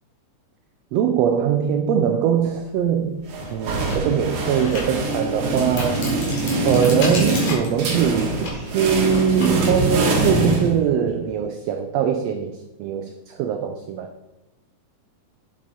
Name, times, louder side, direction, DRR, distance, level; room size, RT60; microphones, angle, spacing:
voice 1, 0.9-3.3 3.5-6.1 6.6-14.1, right 8 dB, 90° right, 1.4 m, -22 dB
sound 1, 2.7-2.8 3.3-9.9, left 2 dB, 75° left, 3.7 m, -34 dB
sound 2, 3.3-11.2, right 2 dB, 60° right, 2.3 m, -24 dB
7.9 x 7.6 x 4.1 m
omnidirectional pair, 3.5 m